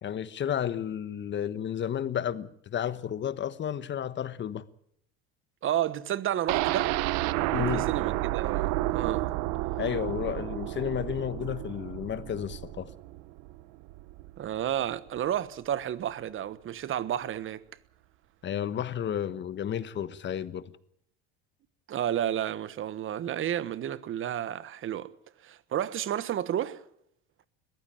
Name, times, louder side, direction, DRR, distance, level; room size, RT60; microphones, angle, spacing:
voice 1, 0.0-4.6 7.5-7.9 9.8-12.9 18.4-20.7, left 9 dB, 40° left, 1.3 m, -32 dB
voice 2, 5.6-6.9 7.6-9.3 14.4-17.6 21.9-25.1 25.4-26.8, right 11 dB, 45° right, 1.3 m, -31 dB
sound 1, 6.5-14.4 14.7-14.8 15.2-15.3, right 17 dB, 70° right, 0.9 m, -31 dB
21.5 x 15.0 x 8.7 m
supercardioid pair, 95°, 30 cm